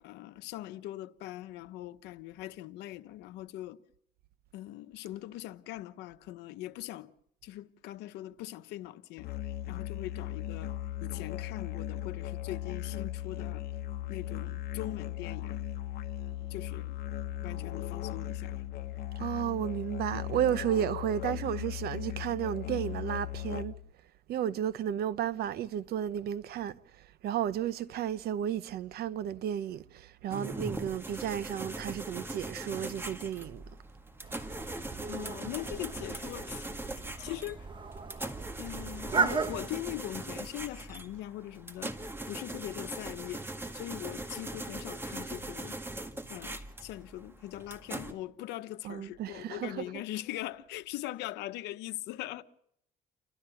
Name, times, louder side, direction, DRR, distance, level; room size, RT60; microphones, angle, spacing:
voice 1, 0.0-3.8 4.5-7.1 7.4-9.3 9.7-10.7 11.0-13.7 14.1-15.6 16.5-16.9 17.4-18.6 35.1-36.7 37.2-37.7 38.6-42.0 42.2-45.8 46.3-52.4, left 15 dB, 90° left, 1.0 m, -41 dB
Musical instrument, 9.2-23.9, left 14 dB, 65° left, 1.2 m, -37 dB
voice 2, 19.1-23.7 24.3-33.6 48.8-50.0, right 10 dB, 70° right, 0.9 m, -33 dB
sound 1, 30.3-48.1, right 2 dB, 15° right, 1.8 m, -41 dB
sound 2, 34.2-39.6, right 5 dB, 30° right, 1.4 m, -36 dB
30.0 x 13.0 x 7.0 m
cardioid pair, 110°, 17 cm